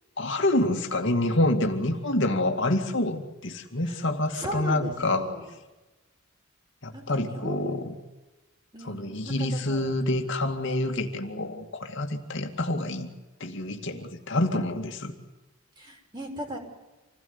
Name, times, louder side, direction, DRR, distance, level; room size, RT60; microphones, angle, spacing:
voice 1, 0.2-5.3 6.8-7.9 8.9-13.1 13.4-15.1, left 1 dB, 60° left, 3 dB, 2.3 m, -27 dB
voice 2, 4.3-5.5 6.9-7.8 8.7-10.0 15.8-16.6, equal, 20° right, 1 dB, 5.9 m, -38 dB
27.5 x 17.0 x 9.6 m, 1.1 s
head